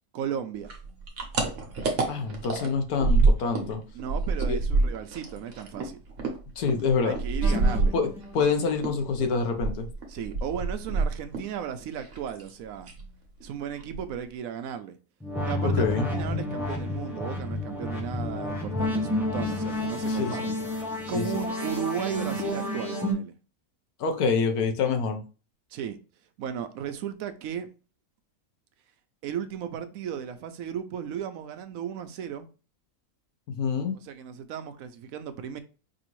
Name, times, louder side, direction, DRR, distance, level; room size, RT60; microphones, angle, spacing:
voice 1, 0.1-0.7 3.9-6.0 7.0-7.9 10.1-12.9 13.4-15.0 15.4-20.5 21.1-23.3 25.7-26.0 26.4-27.7 29.2-32.5 34.0-35.6, right 8 dB, 75° right, 1.0 m, -35 dB
sound 1, 0.6-3.7 4.0-8.5 8.8-11.6 11.8-12.5 12.8-13.1 13.4-13.5 13.8-14.3, right 3 dB, 60° right, 1.2 m, -26 dB
voice 2, 2.1-3.8 4.5-4.6 6.6-7.2 7.9-8.1 8.3-9.9 15.6-16.1 20.1-20.5 21.1-21.2 24.0-25.2 33.5-34.0, left 5 dB, 90° left, 1.3 m, -26 dB
sound 2, 7.4-8.4 15.2-23.1, left 1 dB, ahead, 0.7 m, -30 dB
5.1 x 2.7 x 3.0 m
omnidirectional pair, 1.5 m